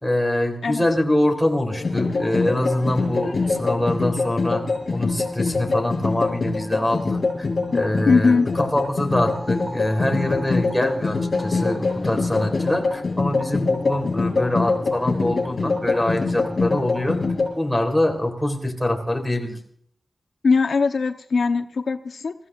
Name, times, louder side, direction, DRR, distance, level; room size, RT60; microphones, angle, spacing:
voice 1, 0.0-4.6 4.9-17.2 17.6-19.6, left 1 dB, 5° left, 1 dB, 3.5 m, -24 dB
sound 1, 1.7-17.5, left 3 dB, 50° left, 7.0 m, -24 dB
voice 2, 8.1-8.5 20.4-22.3, left 4 dB, 80° left, 6 dB, 0.9 m, -20 dB
28.5 x 15.5 x 2.5 m, 0.62 s
wide cardioid pair, 125°, 0 cm